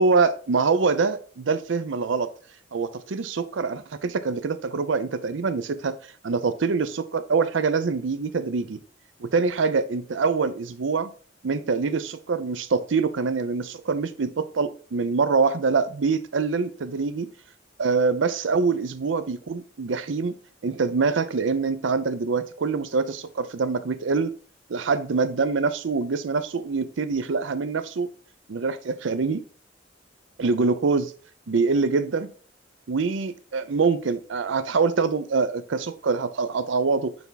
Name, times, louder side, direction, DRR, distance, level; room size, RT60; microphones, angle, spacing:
voice 1, 0.0-2.3 2.7-6.0 6.2-8.8 9.2-11.1 11.4-17.3 17.8-20.3 20.6-24.3 24.7-28.1 28.5-29.4 30.4-31.1 31.5-32.3 32.9-37.1, right 4 dB, 90° right, 0.5 m, -24 dB
6.9 x 3.4 x 4.0 m
head